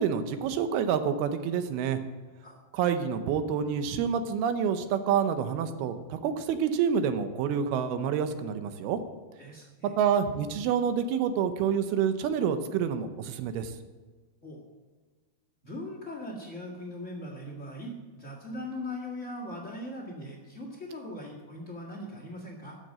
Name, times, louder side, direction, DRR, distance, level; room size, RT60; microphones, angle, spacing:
voice 1, 0.0-2.0 2.7-9.0 9.8-13.7, right 7 dB, 75° right, 9 dB, 2.6 m, -28 dB
voice 2, 9.4-9.9 14.4-14.6 15.6-22.8, left 1 dB, 50° left, -1 dB, 0.8 m, -40 dB
13.0 x 6.5 x 7.5 m, 1.4 s
omnidirectional pair, 4.7 m